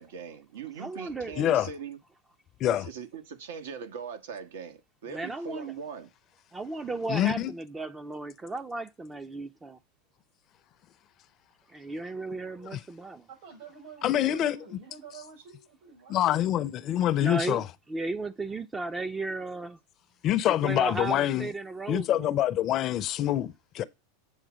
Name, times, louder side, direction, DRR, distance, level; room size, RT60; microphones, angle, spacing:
voice 1, 0.0-2.0 2.7-6.1, right 6 dB, 85° right, 1.4 m, -40 dB
voice 2, 0.8-1.4 5.1-5.7 6.5-9.8 11.7-13.3 17.2-17.6 17.9-19.8 20.6-22.4, right 3 dB, 15° right, 0.4 m, -35 dB
voice 3, 1.4-1.7 2.6-2.9 7.1-7.5 12.7-12.8 14.0-14.6 16.1-17.7 20.2-21.5 21.9-23.8, left 12 dB, 40° left, 0.5 m, -26 dB
voice 4, 13.3-17.0 18.5-18.6, right 6 dB, 60° right, 6.0 m, -49 dB
7.9 x 3.5 x 6.2 m
supercardioid pair, 135°, 0 cm